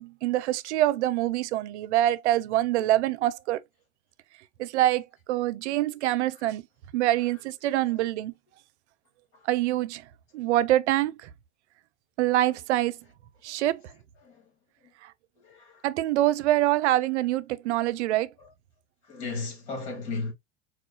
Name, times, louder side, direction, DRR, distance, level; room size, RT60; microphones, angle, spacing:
voice 1, 0.0-3.6 4.6-6.6 6.9-8.3 9.5-10.1 10.3-11.3 12.2-13.0 13.4-13.9 15.0-15.1 15.8-18.3, right 14 dB, 80° right, 0.5 m, -25 dB
voice 2, 7.2-8.1 9.3-9.5 13.4-13.7 14.2-14.5 14.8-14.9 15.4-15.9 18.4-18.5 19.0-20.3, left 3 dB, 70° left, 2.2 m, -38 dB
4.4 x 2.3 x 2.8 m
hypercardioid pair, 95°, 34 cm